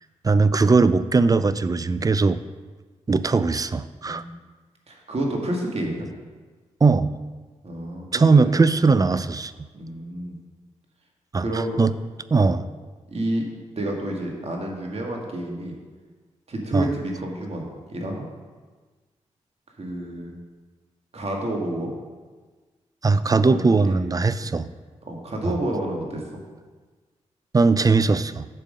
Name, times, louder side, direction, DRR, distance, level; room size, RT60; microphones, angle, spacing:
voice 1, 0.2-2.4 3.1-4.2 6.8-7.1 8.1-9.5 11.3-11.4 11.8-11.9 12.3-12.6 16.7-16.9 23.0-24.7 27.5-28.5, right 4 dB, 30° right, 14 dB, 0.4 m, -19 dB
voice 2, 4.0-4.4 4.9-6.1 7.6-8.8 9.7-10.4 11.4-11.8 13.1-13.4 13.7-15.8 16.5-18.3 19.8-20.4 21.1-21.9 23.4-24.1 24.4-24.6 25.0-26.4, right 1 dB, 50° right, 0 dB, 1.8 m, -29 dB
6.5 x 5.1 x 6.4 m, 1.4 s
supercardioid pair, 45°, 13 cm